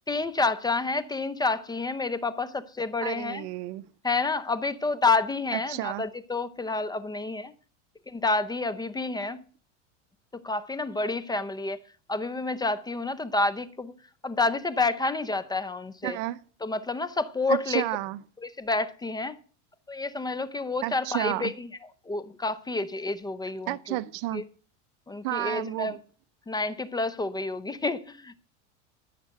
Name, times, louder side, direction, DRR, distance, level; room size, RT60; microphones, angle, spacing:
voice 1, 0.1-3.5 4.0-7.5 8.1-9.4 10.4-11.8 12.1-13.9 14.2-16.2 16.6-17.8 18.4-19.4 19.9-21.7 22.1-24.0 24.3-24.4 25.1-26.0 26.5-28.3, left 3 dB, 10° left, 0.6 m, -29 dB
voice 2, 3.0-3.9 5.5-6.0 16.0-16.4 17.5-18.2 20.8-21.5 23.7-24.4 25.2-26.0, right 17 dB, 55° right, 0.7 m, -31 dB
14.5 x 6.7 x 6.5 m
supercardioid pair, 115°, 36 cm